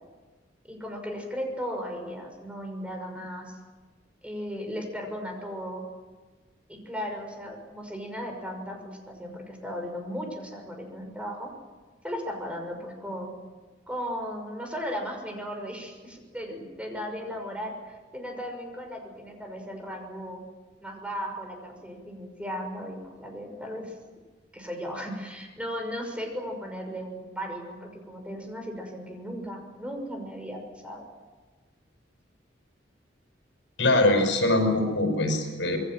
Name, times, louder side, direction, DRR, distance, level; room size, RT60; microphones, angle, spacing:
voice 1, 0.7-3.6 4.2-5.8 6.7-11.5 12.0-13.3 13.9-20.4 20.8-23.9 24.5-31.1, equal, 5° right, 3 dB, 5.9 m, -36 dB
voice 2, 33.8-35.8, left 2 dB, 80° left, 5 dB, 5.8 m, -23 dB
27.0 x 22.0 x 7.7 m, 1.3 s
head